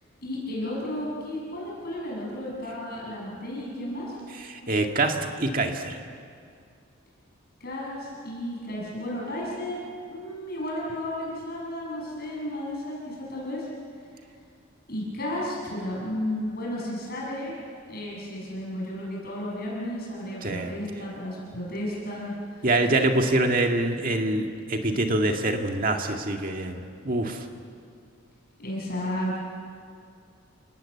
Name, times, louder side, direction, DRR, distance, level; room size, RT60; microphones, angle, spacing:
voice 1, 0.2-4.2 7.6-9.8 10.1-13.7 14.9-17.6 17.9-22.7 28.6-29.4, left 1 dB, 45° left, -4 dB, 7.1 m, -33 dB
voice 2, 4.5-6.0 20.4-20.7 22.6-27.4, right 2 dB, 40° right, 3 dB, 2.0 m, -25 dB
29.0 x 19.0 x 8.5 m, 2.3 s
head